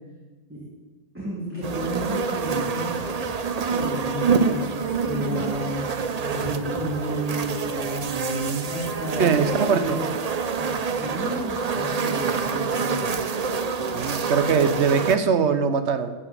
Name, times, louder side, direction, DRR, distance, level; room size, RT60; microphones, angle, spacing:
voice 1, 1.1-2.9 3.7-6.0 6.3-8.1 8.6-10.0 10.6-13.1, equal, 10° right, -6 dB, 2.5 m, -32 dB
sound 1, 1.6-15.2, right 5 dB, 85° right, 0.3 m, -27 dB
voice 2, 8.1-8.7 9.2-10.0 13.9-16.1, right 6 dB, 55° right, 10 dB, 1.0 m, -22 dB
12.0 x 6.1 x 8.2 m, 1.3 s
omnidirectional pair, 1.6 m